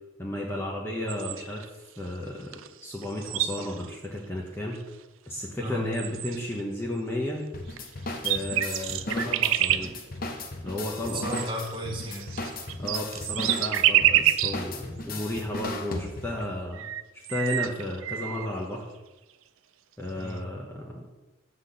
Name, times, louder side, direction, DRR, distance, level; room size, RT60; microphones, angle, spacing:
voice 1, 0.2-1.6 2.0-4.8 5.3-7.5 8.2-9.9 10.6-11.3 12.8-16.8 17.1-18.9 20.0-21.1, left 1 dB, 10° left, -3 dB, 0.9 m, -33 dB
sound 1, 1.1-1.7 2.5-2.7 2.9-4.0 4.7-4.8 5.6-5.7 5.9-6.6 7.7-7.8 8.1-9.9 11.1-14.6 15.2-15.3 16.4-16.5 16.7-18.5, right 12 dB, 70° right, 0.4 m, -27 dB
voice 2, 5.6-5.9 11.1-12.3 15.3-15.6 20.1-20.5, equal, 20° right, -1 dB, 1.5 m, -34 dB
sound 2, 7.5-16.5, left 2 dB, 40° left, 0.8 m, -36 dB
8.1 x 3.9 x 6.7 m, 1.1 s
head